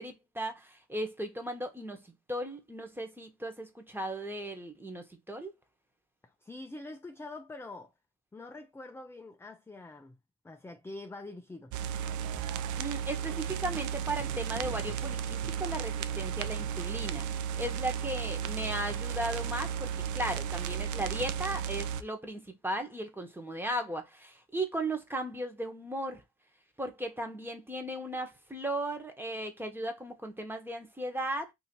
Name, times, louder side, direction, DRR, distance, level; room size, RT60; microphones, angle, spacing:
voice 1, 0.0-5.5 12.8-26.2 26.8-31.5, right 1 dB, 5° right, 1.0 m, -36 dB
voice 2, 6.2-7.9 8.3-10.2 10.4-11.7, left 2 dB, 10° left, 0.4 m, -45 dB
sound 1, 11.7-22.0, right 8 dB, 75° right, 0.5 m, -34 dB
2.7 x 2.6 x 4.3 m
cardioid pair, 90°, 30 cm